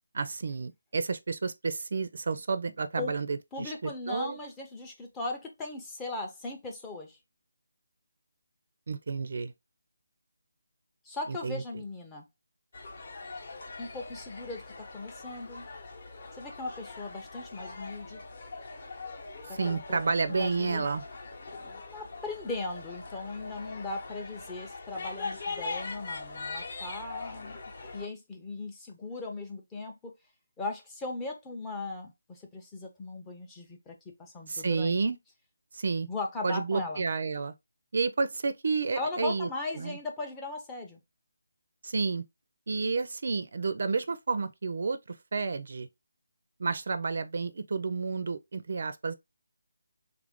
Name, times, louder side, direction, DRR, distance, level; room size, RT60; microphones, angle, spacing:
voice 1, 0.1-4.4 8.9-9.5 11.3-11.6 19.5-21.0 34.5-35.2 35.7-36.1 36.4-37.5 37.9-39.5 39.8-40.0 41.8-42.2 42.7-45.9 46.6-49.1, right 4 dB, 50° right, 0.4 m, -30 dB
voice 2, 3.5-7.2 11.0-12.3 13.8-14.6 14.9-15.6 16.3-18.2 19.5-20.0 20.4-20.8 21.6-27.6 27.9-30.1 30.6-33.9 34.2-34.9 36.1-37.1 38.9-41.0, left 3 dB, 10° left, 0.5 m, -38 dB
sound 1, 12.7-28.1, left 3 dB, 35° left, 0.8 m, -42 dB
3.4 x 2.5 x 3.5 m
figure-of-eight pair, 170°, 0 cm